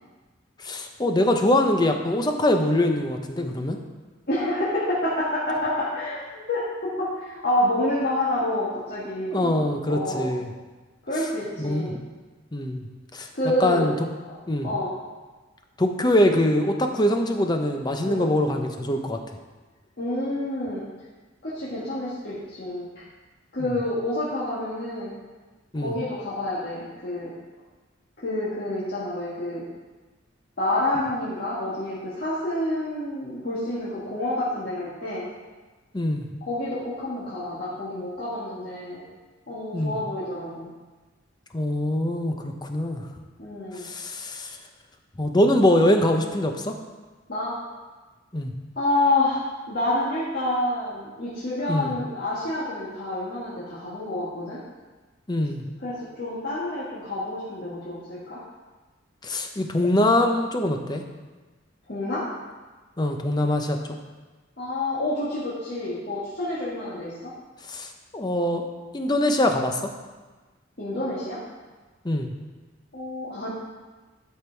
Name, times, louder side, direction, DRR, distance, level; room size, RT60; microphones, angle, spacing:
voice 1, 0.6-3.8 9.3-10.5 11.6-11.9 12.5-12.9 13.1-13.3 13.6-13.9 14.5-14.7 15.8-19.2 23.6-23.7 25.7-25.9 35.9-36.3 39.7-40.0 41.5-43.1 43.7-44.6 45.2-46.8 48.3-48.5 51.7-51.9 55.3-55.7 59.2-61.0 63.0-64.0 67.7-68.6 68.9-69.9 72.0-72.3, left 1 dB, 20° left, 4 dB, 0.7 m, -23 dB
voice 2, 4.3-6.6 7.0-9.6 9.9-10.3 11.0-11.9 13.3-13.9 14.6-14.9 18.0-18.3 20.0-20.8 21.4-22.9 23.5-25.1 25.7-27.3 28.2-29.6 30.6-35.3 36.5-39.0 39.5-40.7 43.4-43.9 47.3-47.6 48.7-54.6 55.8-58.4 61.9-62.2 64.6-67.3 70.8-71.4 72.9-73.5, left 1 dB, 50° left, -9 dB, 1.7 m, -28 dB
11.5 x 5.4 x 4.5 m, 1.3 s
head